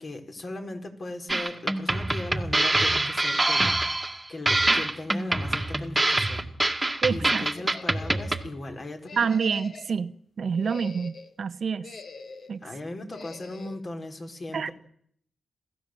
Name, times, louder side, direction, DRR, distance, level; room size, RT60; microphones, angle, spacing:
voice 1, 0.0-9.3 12.6-14.7, left 2 dB, 40° left, 4.0 m, -38 dB
sound 1, 1.3-8.5, right 2 dB, 15° right, 1.9 m, -25 dB
voice 2, 7.0-7.4 9.2-10.1 10.4-11.9 12.5-12.6 14.5-14.7, right 6 dB, 55° right, 0.9 m, -27 dB
sound 2, 7.5-8.5 9.0-10.0 10.5-11.3 11.8-12.6 13.1-13.8, left 4 dB, 60° left, 2.1 m, -44 dB
27.5 x 15.5 x 7.7 m
cardioid pair, 90°, 0 cm